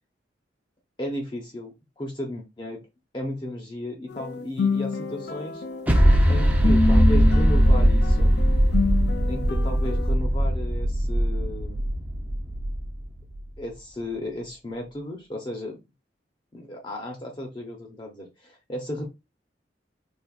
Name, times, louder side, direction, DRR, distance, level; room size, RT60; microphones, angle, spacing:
voice 1, 1.0-2.8 3.1-5.6 6.3-8.3 9.3-11.8 13.6-15.8 16.5-19.0, left 1 dB, 25° left, 0 dB, 0.8 m, -34 dB
sound 1, 4.1-10.1, left 3 dB, 60° left, 0.5 m, -28 dB
sound 2, 5.9-13.4, equal, 10° right, 0.6 m, -20 dB
4.3 x 2.9 x 2.4 m, 0.24 s
head